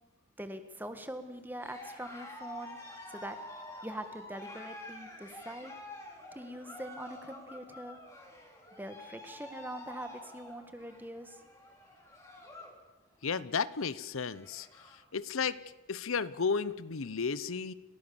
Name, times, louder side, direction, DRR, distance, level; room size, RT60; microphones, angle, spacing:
voice 1, 0.4-2.8 3.1-3.4 3.8-5.7 6.3-8.0 8.8-11.4, right 1 dB, 10° right, 8 dB, 1.6 m, -43 dB
Cheering, 1.5-12.8 13.1-13.5 13.9-14.0 14.2-15.0, left 1 dB, 15° left, 4.1 m, -49 dB
voice 2, 13.2-14.7 15.1-15.6 15.9-17.7, left 5 dB, 85° left, 16 dB, 0.8 m, -33 dB
29.5 x 17.0 x 7.1 m, 1.1 s
head